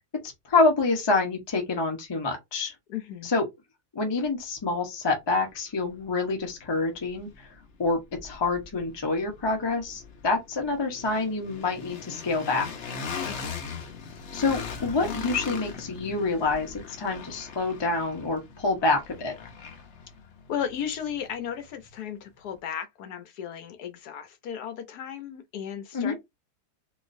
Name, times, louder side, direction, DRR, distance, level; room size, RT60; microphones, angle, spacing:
voice 1, 0.4-2.7 3.2-3.4 3.9-7.5 7.8-12.7 14.3-19.3 25.9-26.2, left 3 dB, 25° left, 0.6 m, -27 dB
voice 2, 2.9-3.3 13.2-13.5 20.5-26.2, left 8 dB, 70° left, 1.2 m, -35 dB
sound 1, 5.5-5.6 6.0-22.0, left 5 dB, 55° left, 0.9 m, -40 dB
4.0 x 2.5 x 2.5 m
omnidirectional pair, 1.8 m